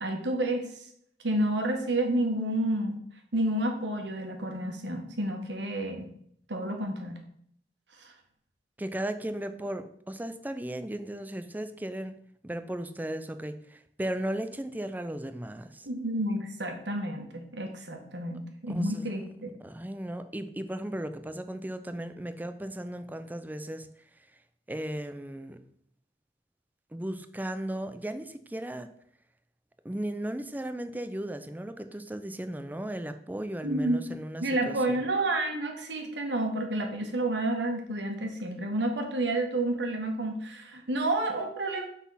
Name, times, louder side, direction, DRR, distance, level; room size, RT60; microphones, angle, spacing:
voice 1, 0.0-0.7 1.2-3.0 3.3-6.1 6.5-7.2 8.0-8.1 15.9-19.5 33.6-34.1 34.4-41.8, right 1 dB, 75° right, 3 dB, 1.4 m, -30 dB
voice 2, 8.8-15.9 18.7-19.2 19.6-23.9 24.7-25.6 26.9-28.9 29.8-35.0, right 1 dB, 10° right, 10 dB, 0.5 m, -36 dB
6.1 x 4.1 x 5.6 m, 0.67 s
head